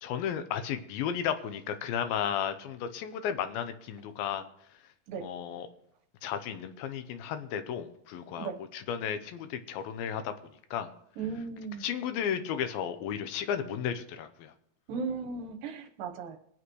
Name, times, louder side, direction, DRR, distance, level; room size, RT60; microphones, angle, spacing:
voice 1, 0.0-4.4 5.2-5.7 6.2-10.3 10.7-10.9 11.8-14.5, left 8 dB, 80° left, 9 dB, 2.6 m, -34 dB
voice 2, 11.2-11.9 14.9-16.4, right 5 dB, 70° right, 4 dB, 2.7 m, -36 dB
24.0 x 8.6 x 3.2 m, 0.73 s
omnidirectional pair, 4.3 m